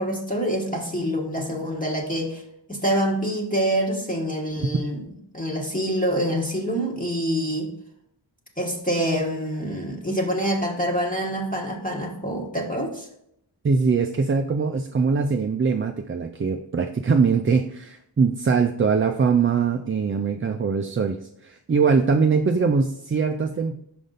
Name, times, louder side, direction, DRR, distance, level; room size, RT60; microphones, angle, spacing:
voice 1, 0.0-2.4 2.7-5.0 5.3-7.7 8.6-13.1, equal, 20° left, -2 dB, 1.3 m, -26 dB
voice 2, 13.6-23.7, right 5 dB, 30° right, 4 dB, 0.4 m, -22 dB
5.2 x 5.1 x 3.9 m, 0.73 s
wide cardioid pair, 55°, 45 cm